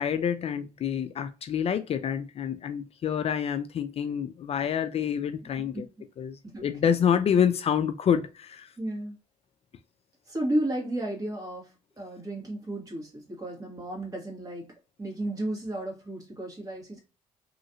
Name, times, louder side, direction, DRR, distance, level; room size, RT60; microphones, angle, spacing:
voice 1, 0.0-5.8 6.2-8.7, left 8 dB, 50° left, 0.4 m, -27 dB
voice 2, 8.8-9.2 10.3-14.7 15.0-17.0, right 1 dB, 25° right, 1.7 m, -33 dB
3.1 x 2.5 x 2.8 m
cardioid pair, 85°, 14 cm